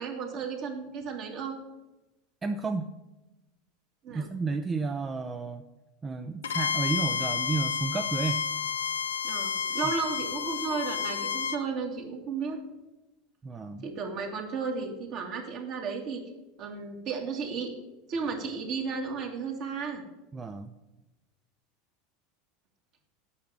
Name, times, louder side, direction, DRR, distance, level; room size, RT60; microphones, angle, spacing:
voice 1, 0.0-1.5 4.0-4.3 9.2-12.6 13.8-16.2 16.6-17.7 18.1-20.0, right 5 dB, 50° right, 2 dB, 2.1 m, -34 dB
voice 2, 2.4-2.9 4.1-5.6 6.0-8.4 13.4-13.9 20.3-20.7, right 4 dB, 20° right, 7 dB, 0.6 m, -32 dB
Bowed string instrument, 6.4-11.6, left 7 dB, 80° left, 0.6 m, -30 dB
8.6 x 5.9 x 7.9 m, 1.0 s
hypercardioid pair, 85°, 0 cm